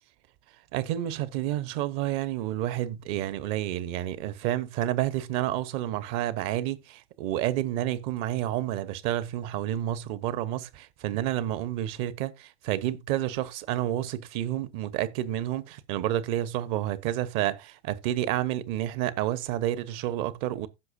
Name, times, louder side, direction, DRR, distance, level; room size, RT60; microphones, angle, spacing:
voice 1, 0.7-20.7, right 13 dB, 50° right, 1.2 m, -30 dB
15.5 x 6.2 x 2.7 m
hypercardioid pair, 90°, 33 cm